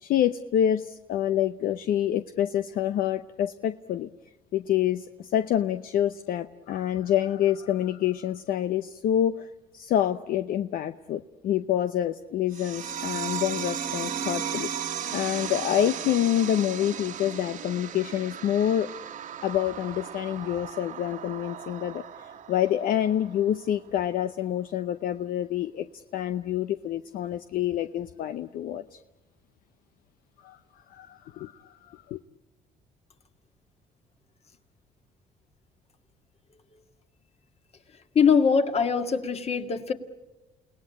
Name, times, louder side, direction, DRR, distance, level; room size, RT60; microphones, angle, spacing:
voice 1, 0.0-4.1 4.5-14.7 15.1-18.9 19.4-29.0 30.4-30.6 30.9-32.2, left 11 dB, 70° left, 0.8 m, -27 dB
sound 1, 12.5-23.5, right 8 dB, 60° right, 1.5 m, -36 dB
voice 2, 38.1-39.9, left 6 dB, 40° left, 2.1 m, -22 dB
29.5 x 18.0 x 8.6 m
cardioid pair, 85°, 15 cm